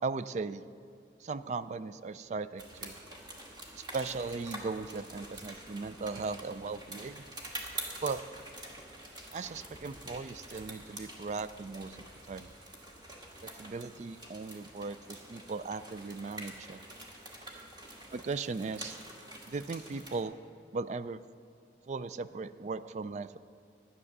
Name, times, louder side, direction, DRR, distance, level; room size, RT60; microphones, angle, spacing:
voice 1, 0.0-0.7 1.2-2.9 3.7-7.2 8.0-8.2 9.3-12.0 12.3-12.5 13.4-16.8 18.1-19.0 19.5-20.3 20.7-21.2 21.9-23.4, right 4 dB, 40° right, 14 dB, 0.3 m, -37 dB
sound 1, 2.6-20.2, right 1 dB, 25° right, 1.5 m, -46 dB
11.0 x 9.7 x 6.6 m, 2.2 s
head